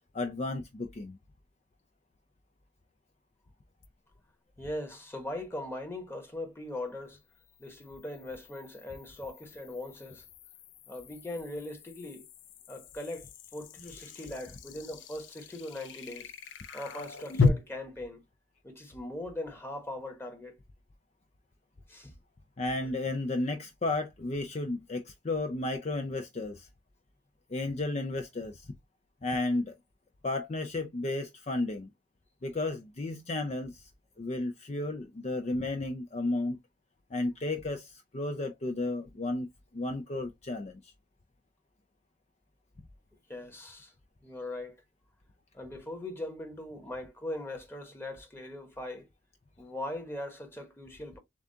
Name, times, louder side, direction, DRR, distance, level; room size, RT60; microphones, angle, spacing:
voice 1, 0.1-1.2 13.8-14.6 22.6-26.7 27.5-28.7 29.2-29.8 30.2-31.9 32.4-33.9 34.2-36.6 37.1-39.5 39.7-40.9, left 2 dB, 35° left, 0.4 m, -33 dB
sound 1, 3.8-3.9 7.3-17.5, left 4 dB, 85° left, 0.7 m, -36 dB
voice 2, 4.6-7.2 7.6-10.2 10.9-12.3 12.7-16.3 16.7-18.2 18.6-20.6 21.9-22.1 22.8-22.9 43.3-43.9 44.2-44.7 45.5-49.1 49.6-51.2, left 1 dB, 10° left, 1.1 m, -40 dB
7.1 x 2.4 x 2.7 m
head